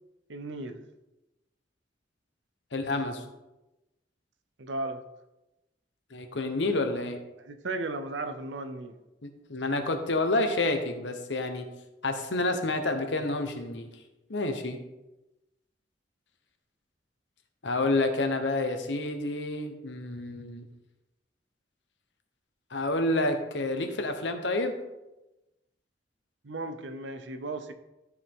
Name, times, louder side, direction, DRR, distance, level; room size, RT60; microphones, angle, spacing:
voice 1, 0.3-0.8 4.6-5.0 7.5-9.0 26.4-27.7, right 2 dB, 75° right, 9 dB, 0.7 m, -35 dB
voice 2, 2.7-3.2 6.1-7.2 9.2-11.7 12.0-13.9 14.3-14.8 17.6-20.7 22.7-24.8, left 2 dB, 75° left, 6 dB, 1.1 m, -29 dB
13.0 x 4.9 x 3.7 m, 0.99 s
head